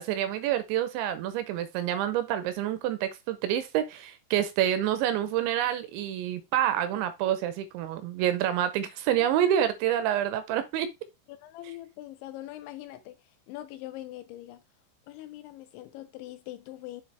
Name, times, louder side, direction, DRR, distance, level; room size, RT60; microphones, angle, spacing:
voice 1, 0.0-10.9, right 11 dB, 80° right, 2.8 m, -27 dB
voice 2, 11.3-14.6 15.1-17.0, left 15 dB, 85° left, 2.8 m, -42 dB
7.4 x 6.2 x 3.3 m
omnidirectional pair, 5.7 m